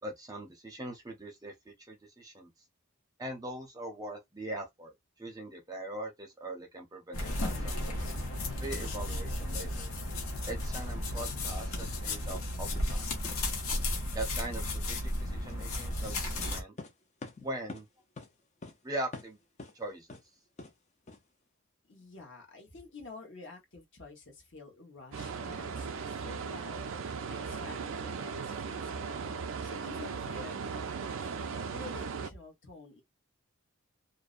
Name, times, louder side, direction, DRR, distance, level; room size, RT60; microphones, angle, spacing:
voice 1, 0.0-2.5 3.2-8.0 8.6-9.9 10.5-13.2 14.1-16.1 16.5-16.8 17.4-17.9 18.8-19.4 19.7-20.2, right 1 dB, 15° right, 0.6 m, -41 dB
sound 1, 7.1-16.6, left 1 dB, 80° left, 0.8 m, -34 dB
sound 2, 11.8-11.9 12.3-12.5 12.7-13.0 13.2-13.4 13.7-13.9 16.8-17.9 18.2-18.3 18.6-18.8 19.1-19.7 20.1-20.2 20.6-20.7 21.1-21.2, left 3 dB, 30° left, 0.5 m, -45 dB
voice 2, 21.8-26.8 27.2-31.3 31.7-33.0, left 3 dB, 55° left, 1.1 m, -49 dB
sound 3, 25.1-32.3, right 5 dB, 65° right, 0.4 m, -37 dB
2.5 x 2.0 x 2.4 m
head